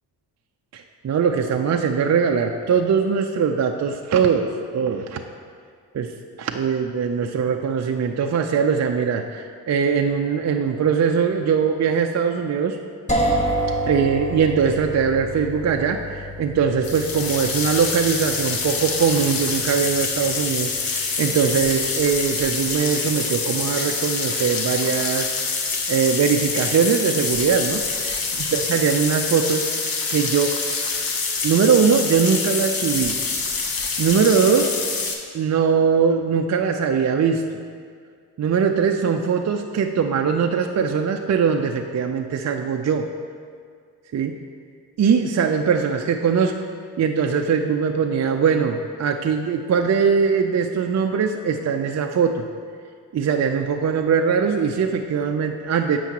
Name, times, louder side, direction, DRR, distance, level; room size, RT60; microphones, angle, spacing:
voice 1, 0.7-5.2 5.9-12.8 13.9-28.2 28.5-29.7 30.1-30.6 31.4-33.2 34.0-34.7 35.3-37.4 38.4-43.1 44.1-44.3 45.0-46.6 47.0-52.5 53.1-56.0, right 6 dB, 40° right, 4 dB, 0.5 m, -21 dB
sound 1, 13.1-22.9, right 1 dB, 15° left, 1.3 m, -30 dB
sound 2, 16.8-35.1, left 4 dB, 50° left, 1.2 m, -26 dB
9.9 x 7.1 x 3.0 m, 2.1 s
supercardioid pair, 55°, 43 cm